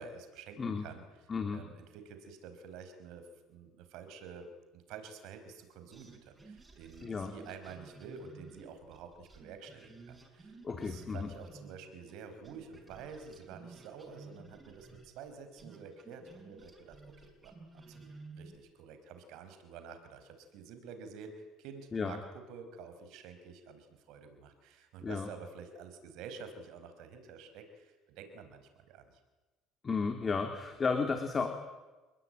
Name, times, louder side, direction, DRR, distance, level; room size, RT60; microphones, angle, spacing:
voice 1, 0.0-17.5 17.9-22.2 22.5-29.2, right 5 dB, 75° right, 8 dB, 5.0 m, -49 dB
voice 2, 1.3-1.6 7.0-7.3 10.6-11.3 21.9-22.2 25.0-25.3 29.8-31.5, left 4 dB, 30° left, 5 dB, 2.9 m, -33 dB
sound 1, 5.9-12.2 12.4-18.7, right 3 dB, 15° right, 5.9 m, -54 dB
29.0 x 20.5 x 9.1 m, 1.2 s
cardioid pair, 110°, 0 cm